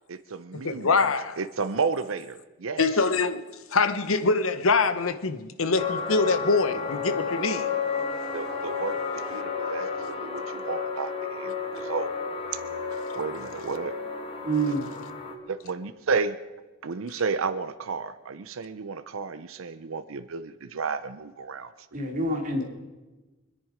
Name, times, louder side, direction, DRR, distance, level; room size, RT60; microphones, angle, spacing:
voice 1, 0.1-1.0 1.4-2.8 8.3-12.1 13.1-13.9 15.5-16.4 16.8-22.0, right 5 dB, 75° right, 12 dB, 0.6 m, -32 dB
voice 2, 0.6-1.4 2.8-3.4 3.7-7.7, left 4 dB, 80° left, 11 dB, 1.0 m, -24 dB
sound 1, 5.8-15.3, left 5 dB, 25° left, 1.6 m, -32 dB
voice 3, 14.4-14.9 21.9-22.6, right 2 dB, 40° right, 0 dB, 2.9 m, -26 dB
25.0 x 10.5 x 5.0 m, 1.2 s
head